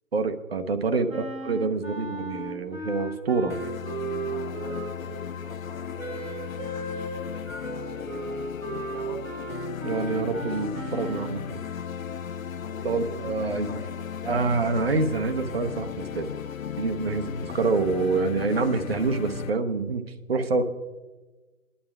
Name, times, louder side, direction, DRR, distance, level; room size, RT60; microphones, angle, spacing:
voice 1, 0.1-3.6 9.8-11.6 12.8-13.8 14.3-16.3 16.8-20.7, right 4 dB, 45° right, 8 dB, 1.0 m, -26 dB
voice 2, 0.9-1.2 1.8-1.9 4.2-6.1 7.6-8.4 8.9-9.3 12.6-14.4, left 2 dB, ahead, -13 dB, 1.2 m, -45 dB
Wind instrument woodwind instrument, 1.1-5.2 6.0-11.4, right 3 dB, 75° right, 2.3 m, -36 dB
sound 1, 3.5-19.5, left 8 dB, 75° left, 0.7 m, -36 dB
24.0 x 11.5 x 2.4 m, 1.3 s
figure-of-eight pair, 160°, 41 cm